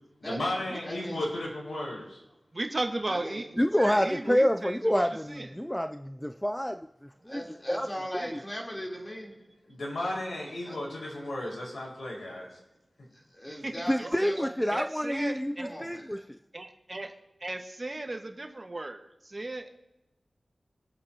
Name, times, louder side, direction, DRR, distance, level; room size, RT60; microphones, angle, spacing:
voice 1, 0.2-2.2 9.7-12.5, left 1 dB, 75° left, -3 dB, 5.3 m, -34 dB
voice 2, 0.8-1.2 3.1-3.4 7.3-9.4 10.6-10.8 13.1-14.5 15.6-16.2, equal, 25° left, -2 dB, 3.8 m, -39 dB
voice 3, 2.5-5.0 5.4-5.5 14.0-14.1 14.7-15.7 16.5-17.1 17.4-19.0 19.3-19.7, right 2 dB, 40° right, 4 dB, 1.7 m, -35 dB
voice 4, 3.6-6.9 7.3-7.4 7.7-7.9 8.3-8.4 13.9-16.4, equal, 5° left, 7 dB, 0.5 m, -27 dB
25.5 x 8.6 x 3.0 m, 0.93 s
cardioid pair, 50°, 0 cm